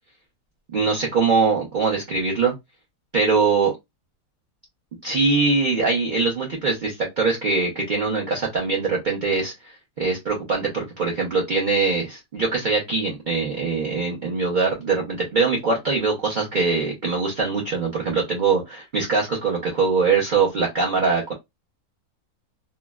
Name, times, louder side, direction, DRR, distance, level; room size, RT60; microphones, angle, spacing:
voice 1, 0.7-2.5 3.1-3.7 5.0-21.3, right 4 dB, 45° right, 0.6 m, -22 dB
3.0 x 2.4 x 2.2 m
omnidirectional pair, 1.8 m